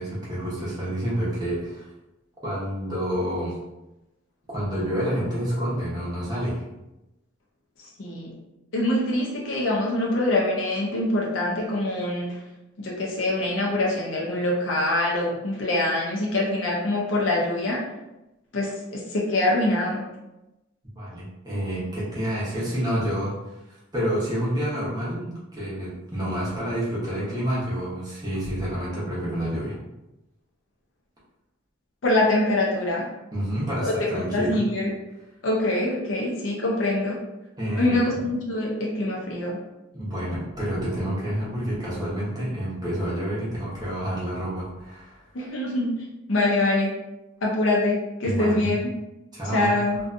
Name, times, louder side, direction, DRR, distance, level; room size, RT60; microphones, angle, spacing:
voice 1, 0.0-1.9 2.4-3.5 4.5-6.6 20.9-23.4 23.9-29.8 33.3-34.6 37.6-38.2 39.9-45.2 48.2-48.8 49.3-49.8, equal, 20° right, -8 dB, 0.9 m, -28 dB
voice 2, 8.0-8.4 8.7-12.4 12.8-17.9 18.5-20.0 32.0-33.1 33.8-34.9 35.4-37.2 37.8-39.6 45.3-46.0 46.3-46.9 47.4-48.8 49.5-50.0, left 1 dB, 70° left, -3 dB, 0.6 m, -24 dB
2.6 x 2.3 x 2.5 m, 0.96 s
head